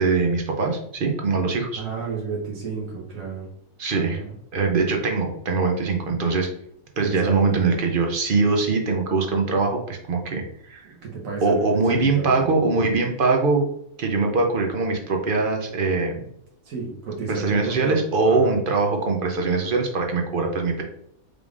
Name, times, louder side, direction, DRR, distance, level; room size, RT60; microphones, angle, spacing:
voice 1, 0.0-1.8 3.8-4.2 4.5-6.5 7.0-10.9 11.4-13.7 14.0-16.2 17.3-20.8, right 4 dB, 55° right, 2 dB, 0.6 m, -22 dB
voice 2, 1.8-3.5 3.9-4.4 7.0-7.8 10.8-12.6 14.2-14.4 16.6-18.6, right 5 dB, 75° right, -3 dB, 1.3 m, -32 dB
5.0 x 3.4 x 2.4 m, 0.73 s
omnidirectional pair, 1.5 m